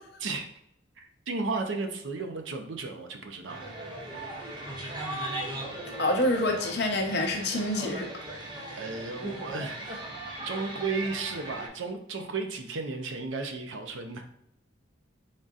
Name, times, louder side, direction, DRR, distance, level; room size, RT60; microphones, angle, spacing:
voice 1, 1.0-3.7 8.7-10.1 10.4-14.2, right 3 dB, 70° right, 5 dB, 0.6 m, -34 dB
sound 1, 3.5-11.7, right 1 dB, 20° right, 0.6 m, -38 dB
voice 2, 6.0-8.1, left 1 dB, 55° left, 2 dB, 0.7 m, -27 dB
4.0 x 3.7 x 2.4 m, 0.78 s
head